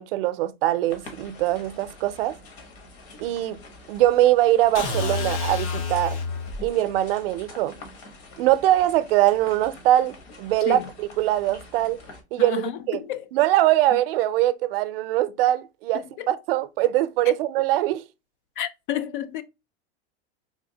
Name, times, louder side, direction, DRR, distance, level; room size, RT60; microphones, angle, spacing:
voice 1, 0.0-2.4 3.2-3.6 3.9-6.2 6.6-7.7 8.4-12.0 12.3-12.6 12.9-13.0 13.3-18.0, right 14 dB, 60° right, 0.4 m, -22 dB
sound 1, 0.9-12.2, left 2 dB, 65° left, 1.2 m, -46 dB
sound 2, 4.7-6.7, left 4 dB, 90° left, 0.9 m, -28 dB
voice 2, 12.4-13.3 15.9-16.3 18.6-19.4, left 11 dB, 50° left, 0.4 m, -31 dB
3.5 x 2.8 x 2.6 m
supercardioid pair, 175°, 33 cm